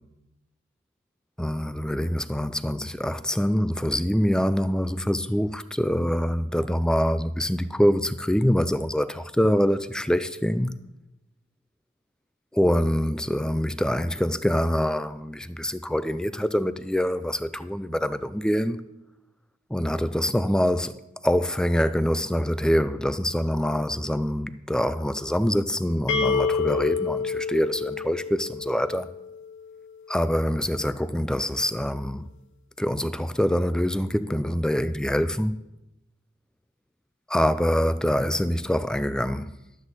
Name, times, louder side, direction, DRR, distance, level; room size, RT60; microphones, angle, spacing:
voice 1, 1.4-10.7 12.5-18.8 19.7-21.0 21.2-29.1 30.1-32.2 32.8-35.6 37.3-39.5, equal, 5° left, 0.3 m, -25 dB
sound 1, 26.1-29.8, left 5 dB, 60° left, 0.8 m, -28 dB
12.0 x 8.0 x 4.1 m
head